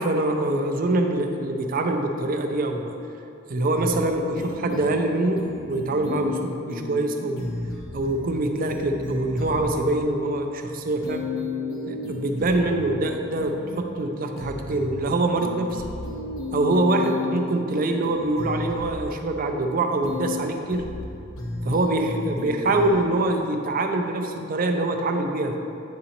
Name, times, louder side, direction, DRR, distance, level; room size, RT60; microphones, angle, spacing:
voice 1, 0.0-3.0 3.5-7.5 7.9-11.3 11.9-15.8 16.5-20.9 21.6-25.6, right 2 dB, 45° right, 4 dB, 0.5 m, -24 dB
sound 1, 3.7-4.0 4.4-5.0 5.4-6.4 6.7-7.0 7.4-8.4 8.7-9.7 11.0-12.7 13.4-13.7 14.4-15.0 15.4-17.4 17.7-19.0 20.0-20.4 20.7-21.0 21.4-22.9, left 3 dB, 85° left, 0.9 m, -33 dB
9.4 x 3.8 x 2.9 m, 2.8 s
head